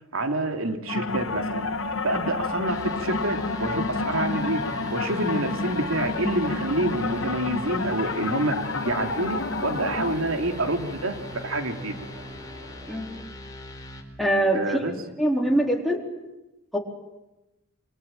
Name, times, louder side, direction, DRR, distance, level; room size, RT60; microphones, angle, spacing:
voice 1, 0.1-1.7 2.0-4.6 4.9-8.6 8.8-11.2 11.4-11.9 14.5-14.9, right 1 dB, 90° right, 5 dB, 3.2 m, -27 dB
sound 1, 0.9-10.1, left 3 dB, 70° left, 1.8 m, -29 dB
sound 2, 1.1-13.2, right 1 dB, 35° right, 4.1 m, -43 dB
sound 3, 2.7-14.0, left 1 dB, 20° left, 4.5 m, -41 dB
voice 2, 14.2-14.8 15.2-16.0 16.7-16.8, right 1 dB, ahead, -1 dB, 4.1 m, -23 dB
26.5 x 25.0 x 9.1 m, 0.98 s
head